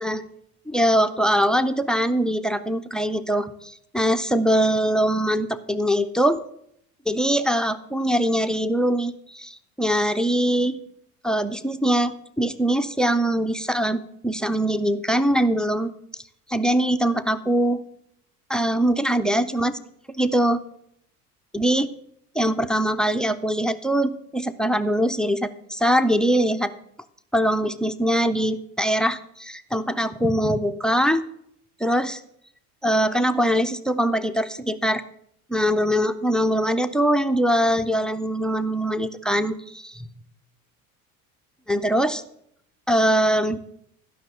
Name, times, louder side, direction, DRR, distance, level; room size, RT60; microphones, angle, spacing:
voice 1, 0.7-6.4 7.1-10.8 11.2-15.9 16.5-17.8 18.5-19.7 20.2-20.6 21.5-21.9 22.4-26.7 27.3-31.3 31.8-32.2 32.8-35.0 35.5-40.1 41.7-42.2 42.9-43.6, equal, ahead, 13 dB, 0.4 m, -22 dB
12.0 x 5.8 x 6.7 m, 0.71 s
hypercardioid pair, 65°, 46 cm